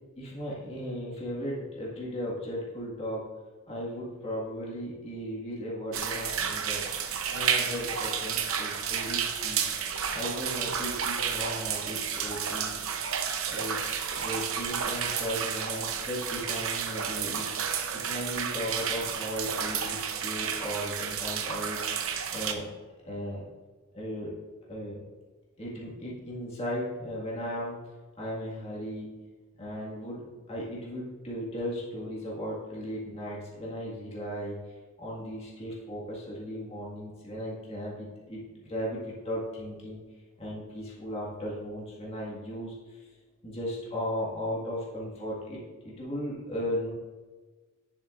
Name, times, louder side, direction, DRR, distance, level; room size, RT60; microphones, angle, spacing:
voice 1, 0.2-3.2 3.7-6.8 7.3-9.7 10.1-12.7 13.5-13.8 14.1-17.4 18.0-21.8 22.3-22.7 23.0-23.4 23.9-24.3 24.7-25.0 25.6-27.8 28.2-29.1 29.6-34.6 35.0-40.0 40.4-43.0 43.4-46.9, equal, 30° left, -6 dB, 1.8 m, -36 dB
sound 1, 5.9-22.5, right 7 dB, 70° right, 0.8 m, -31 dB
10.0 x 7.3 x 2.5 m, 1.3 s
head